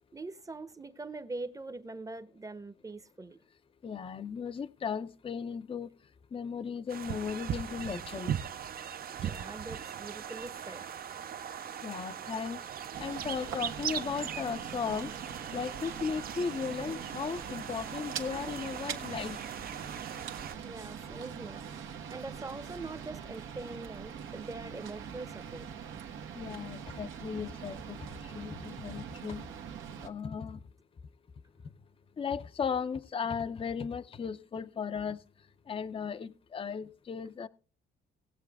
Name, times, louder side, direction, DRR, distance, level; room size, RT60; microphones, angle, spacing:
voice 1, 0.1-3.4 9.2-10.9 20.6-21.6 22.1-25.7, right 3 dB, 15° right, 0.8 m, -43 dB
voice 2, 3.8-5.9 6.3-8.3 11.8-12.6 13.0-15.1 15.5-19.4 26.3-29.5 30.0-30.6 32.2-35.2 35.7-37.5, left 6 dB, 30° left, 0.5 m, -36 dB
sound 1, 6.9-20.5, right 9 dB, 50° right, 0.6 m, -39 dB
sound 2, 12.9-30.1, right 7 dB, 85° right, 1.2 m, -43 dB
18.0 x 7.4 x 3.4 m
cardioid pair, 90°, 20 cm